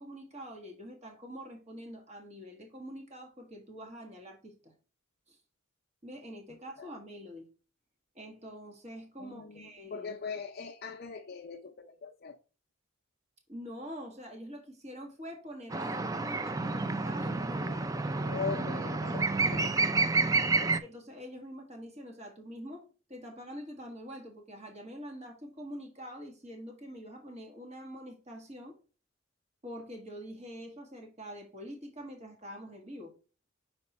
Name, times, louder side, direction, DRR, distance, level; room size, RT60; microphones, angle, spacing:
voice 1, 0.0-4.7 5.3-5.4 6.0-7.5 8.1-10.1 13.5-17.9 19.4-19.7 20.6-22.8 23.1-28.8 29.6-33.1, equal, 35° right, 1.6 m, -45 dB
voice 2, 6.5-6.9 9.2-12.4 18.2-20.0 20.6-20.8, left 5 dB, 50° left, 0.6 m, -41 dB
sound 1, 15.7-20.8, right 3 dB, 15° right, 0.3 m, -29 dB
5.9 x 4.4 x 4.2 m
head